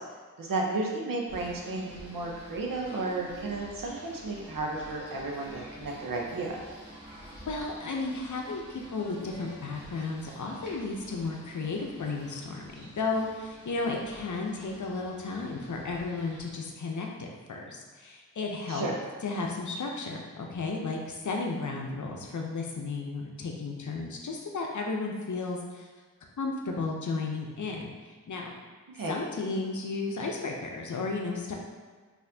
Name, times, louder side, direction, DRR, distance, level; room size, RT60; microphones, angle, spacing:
voice 1, 0.4-6.6 18.7-18.9 28.9-29.1, right 2 dB, 85° right, -1 dB, 0.7 m, -33 dB
Singing / Bird, 1.3-16.5, equal, 35° right, 1.3 m, -49 dB
voice 2, 7.5-18.9 19.2-25.9 26.4-27.9 28.3-28.5 29.1-31.5, left 3 dB, 65° left, 0 dB, 0.6 m, -33 dB
4.1 x 2.6 x 2.7 m, 1.5 s
wide cardioid pair, 85°, 32 cm